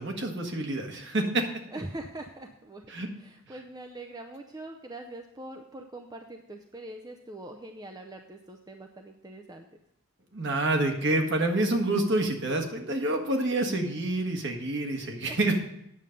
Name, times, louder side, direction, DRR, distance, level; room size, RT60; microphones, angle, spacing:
voice 1, 0.0-1.4 2.9-3.1 10.3-15.6, right 2 dB, 50° right, 3 dB, 1.5 m, -27 dB
voice 2, 1.7-2.8 3.2-9.7 15.3-15.4, right 2 dB, 15° right, 4 dB, 0.5 m, -43 dB
9.5 x 7.1 x 5.2 m, 0.79 s
head